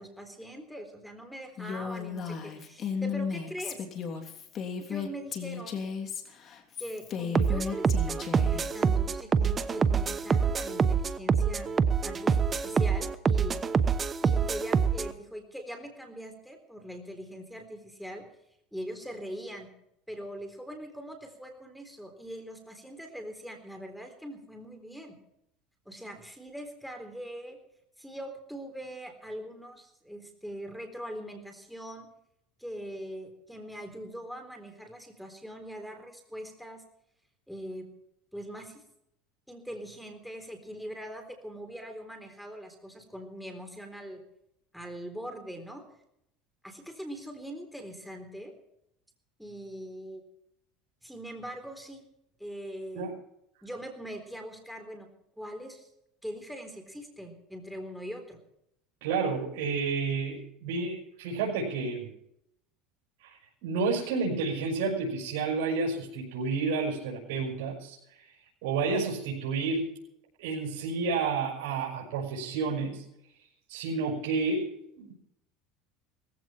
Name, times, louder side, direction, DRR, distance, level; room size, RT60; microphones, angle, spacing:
voice 1, 0.0-3.8 4.9-5.8 6.8-11.8 12.0-13.6 14.2-18.3 18.7-19.7 20.1-25.2 25.9-27.6 28.0-32.1 32.6-36.8 37.5-37.9 38.3-38.8 39.5-44.2 44.7-45.8 46.6-48.5 49.4-50.2 51.0-52.1 52.4-53.1 53.6-55.1 55.4-55.9 56.2-58.4, equal, ahead, 6 dB, 3.8 m, -42 dB
Female speech woman speaking, 1.6-8.6, left 6 dB, 35° left, 3.0 m, -35 dB
sound 1, 7.3-15.1, right 6 dB, 25° right, 1.0 m, -26 dB
voice 2, 59.0-62.1 63.2-68.3 68.6-69.9 70.4-73.0 73.7-74.7 75.0-75.1, right 4 dB, 75° right, -2 dB, 5.8 m, -30 dB
18.0 x 15.5 x 4.5 m, 0.77 s
supercardioid pair, 125°, 0 cm